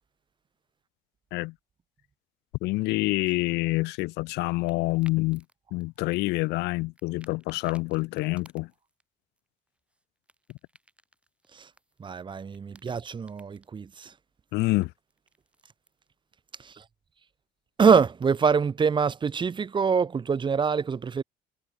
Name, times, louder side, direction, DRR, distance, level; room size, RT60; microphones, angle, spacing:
voice 1, 2.6-5.4 5.7-8.7 14.5-14.9, left 22 dB, 85° left, 0.4 m, -27 dB
sound 1, 3.6-5.5 5.8-6.7 7.0-9.0 9.4-12.2 12.4-13.7 14.8-16.1, right 1 dB, 5° right, 5.9 m, -59 dB
voice 2, 12.0-14.1 17.8-21.2, right 6 dB, 30° right, 0.9 m, -24 dB
cardioid pair, 110°, 17 cm